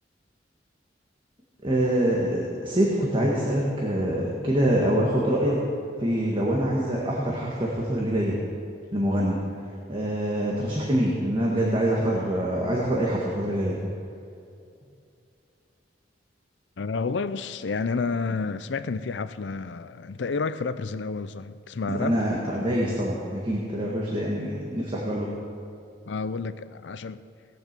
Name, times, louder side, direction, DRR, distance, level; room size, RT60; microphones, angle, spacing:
voice 1, 1.6-5.6 6.0-8.3 8.9-9.4 9.9-13.8 21.9-25.3, right 1 dB, 30° right, 1.7 m, -25 dB
voice 2, 16.8-22.2 26.1-27.2, left 4 dB, 90° left, 0.5 m, -30 dB
18.5 x 7.5 x 6.7 m
head